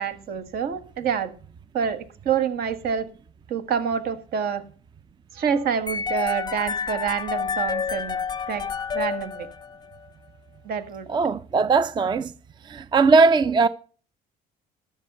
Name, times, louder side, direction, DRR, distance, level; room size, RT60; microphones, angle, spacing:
voice 1, 0.0-1.3 1.7-3.1 3.5-4.6 5.3-8.2 8.5-8.7 8.9-9.5 10.6-11.1, right 7 dB, 65° right, 1.6 m, -27 dB
sound 1, 5.9-10.0, left 6 dB, 25° left, 0.5 m, -29 dB
voice 2, 11.1-12.3 12.6-13.7, right 4 dB, 25° right, 0.4 m, -19 dB
12.5 x 7.2 x 5.4 m
cardioid pair, 110°, 17 cm